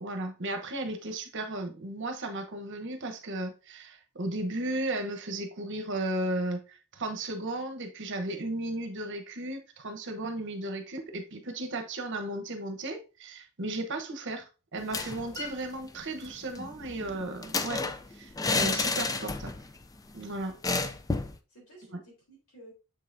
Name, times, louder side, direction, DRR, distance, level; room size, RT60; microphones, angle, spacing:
voice 1, 0.0-17.8 18.1-19.5 20.1-20.6, right 2 dB, 55° right, 1.0 m, -35 dB
sound 1, 14.8-15.6 15.9-16.0 16.3-19.7 20.0-20.1 20.6-21.4, left 3 dB, 15° left, 0.4 m, -31 dB
voice 2, 20.4-21.0 21.5-22.7, right 1 dB, 85° left, 3.7 m, -54 dB
7.3 x 5.5 x 2.6 m
head